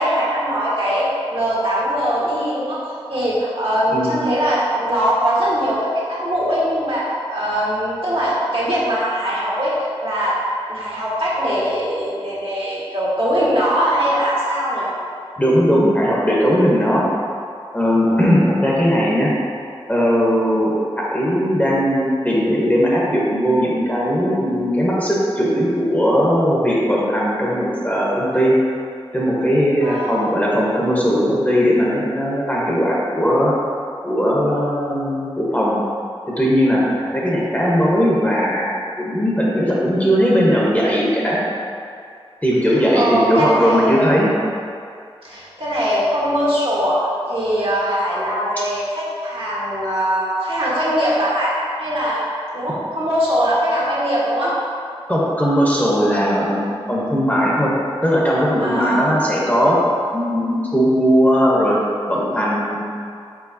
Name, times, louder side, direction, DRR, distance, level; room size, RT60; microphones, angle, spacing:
voice 1, 0.0-9.7 10.0-10.4 10.7-14.9 18.1-18.2 29.8-30.2 37.0-37.2 42.9-44.1 45.2-51.5 51.8-52.2 52.5-54.5 58.6-59.5, equal, 60° right, -8 dB, 1.4 m, -21 dB
voice 2, 15.4-17.1 17.7-19.3 19.9-28.5 29.1-33.5 34.0-35.8 36.3-41.4 42.4-44.3 55.1-57.7 58.0-59.8 60.1-61.8 62.1-62.8, equal, 15° left, -5 dB, 1.0 m, -18 dB
4.8 x 4.1 x 2.7 m, 2.4 s
cardioid pair, 45°, 10 cm